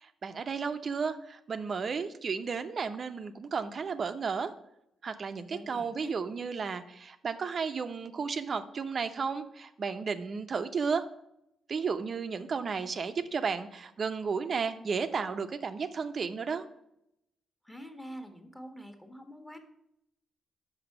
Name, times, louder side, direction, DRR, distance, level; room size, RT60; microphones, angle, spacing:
voice 1, 0.0-4.5 5.0-11.0 11.7-16.7, right 5 dB, 50° right, 9 dB, 0.6 m, -33 dB
voice 2, 5.5-6.1 17.6-19.6, equal, 10° left, 6 dB, 1.5 m, -45 dB
6.0 x 5.7 x 6.7 m, 0.80 s
cardioid pair, 75°, 0 cm